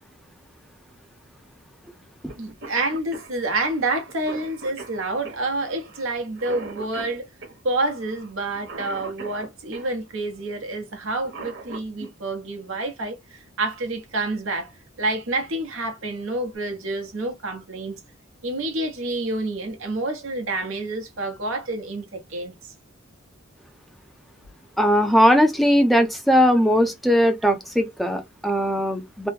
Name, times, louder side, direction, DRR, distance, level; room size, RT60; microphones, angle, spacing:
Cough, 2.3-2.4 2.6-9.9 11.0-12.1 13.7-13.8 14.9-15.1 15.6-15.7 16.1-16.6, right 3 dB, 60° right, 1.1 m, -40 dB
voice 1, 2.4-7.3 7.6-14.7 15.0-17.9 18.4-22.5, right 2 dB, 85° right, 1.0 m, -28 dB
voice 2, 24.8-29.3, equal, ahead, 0.5 m, -19 dB
3.1 x 2.1 x 3.3 m
head